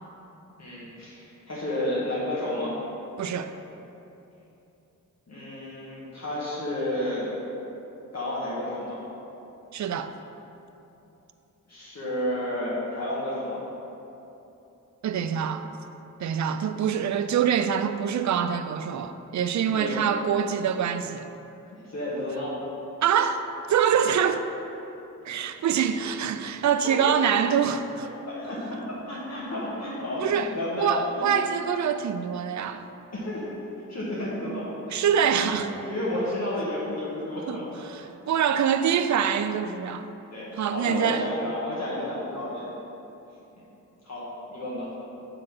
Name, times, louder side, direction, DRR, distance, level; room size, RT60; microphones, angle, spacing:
voice 1, 0.6-2.7 5.3-7.3 8.1-9.0 11.7-13.6 19.7-20.0 21.7-22.6 26.8-27.0 28.3-28.8 29.0-30.9 31.3-31.4 33.1-33.4 33.9-35.0 35.4-37.6 40.3-42.7 44.0-44.9, left 1 dB, 50° left, 1.7 m, -31 dB
voice 2, 3.2-3.5 9.7-10.1 15.0-15.7 16.2-21.3 23.0-23.4 23.7-24.5 25.2-28.1 30.2-32.9 34.4-34.6 34.9-35.7 37.5-37.6 37.9-40.1 40.6-41.3, right 8 dB, 60° right, 0.4 m, -25 dB
7.6 x 4.0 x 6.0 m
wide cardioid pair, 115°, 33 cm